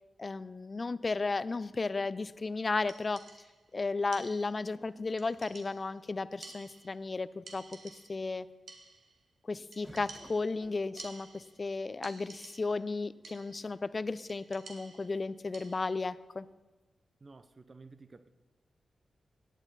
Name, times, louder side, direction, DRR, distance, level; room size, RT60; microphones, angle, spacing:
voice 1, 0.2-3.2 3.7-7.8 8.1-8.5 9.5-16.5, left 3 dB, 45° left, 17 dB, 0.5 m, -34 dB
sound 1, 2.3-2.6 4.6-6.1 6.9-7.0 7.3-7.9 9.8-11.7 12.6-13.3, right 1 dB, 20° right, 3.8 m, -59 dB
sound 2, 2.9-3.7 4.1-4.8 5.2-6.0 6.4-7.2 7.5-8.3 8.7-9.2 9.7-11.7 12.0-12.9 13.2-13.7 14.3-16.0, right 4 dB, 75° right, 1.4 m, -52 dB
voice 2, 17.2-18.3, right 3 dB, 45° right, 11 dB, 0.7 m, -53 dB
17.0 x 9.1 x 4.1 m, 1.2 s
supercardioid pair, 40°, 0 cm